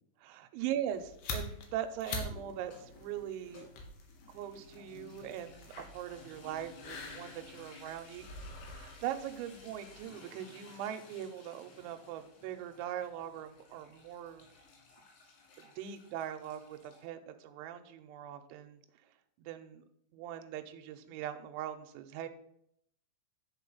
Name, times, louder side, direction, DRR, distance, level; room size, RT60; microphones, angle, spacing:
voice 1, 0.2-3.7 4.3-8.3 8.6-14.5 15.6-18.8 19.4-19.8 20.1-22.3, right 10 dB, 80° right, 8 dB, 2.9 m, -41 dB
sound 1, 0.9-10.0, left 3 dB, 70° left, 2.8 m, -46 dB
sound 2, 1.9-17.1, left 4 dB, 85° left, 5.0 m, -56 dB
10.5 x 4.6 x 5.5 m, 0.73 s
omnidirectional pair, 5.6 m